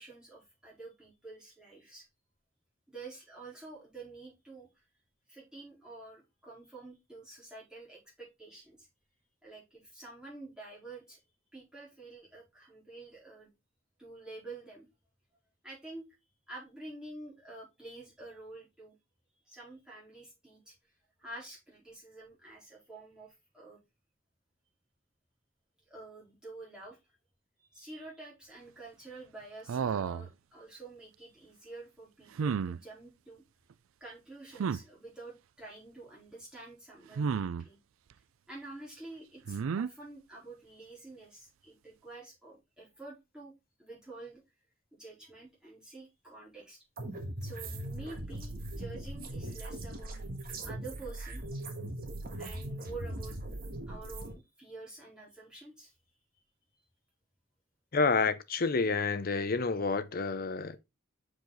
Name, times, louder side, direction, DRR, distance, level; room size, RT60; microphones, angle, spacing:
voice 1, 0.0-2.1 2.9-4.7 5.3-8.9 9.4-11.2 11.5-13.5 14.0-14.9 15.6-16.1 16.5-19.0 19.5-20.7 21.2-23.8 25.9-27.0 27.7-33.4 34.0-37.8 38.5-43.5 43.8-44.4 44.9-46.8 47.4-50.2 50.6-51.5 52.4-53.4 53.9-55.9, right 2 dB, 5° right, 4.0 m, -48 dB
sound 1, 29.7-30.3 32.4-32.8 34.6-34.8 37.2-37.7 39.5-39.9, right 6 dB, 75° right, 0.4 m, -31 dB
sound 2, 47.0-54.3, right 1 dB, 45° right, 1.5 m, -40 dB
voice 2, 57.9-60.8, left 4 dB, 45° left, 0.7 m, -29 dB
6.6 x 5.0 x 3.9 m
head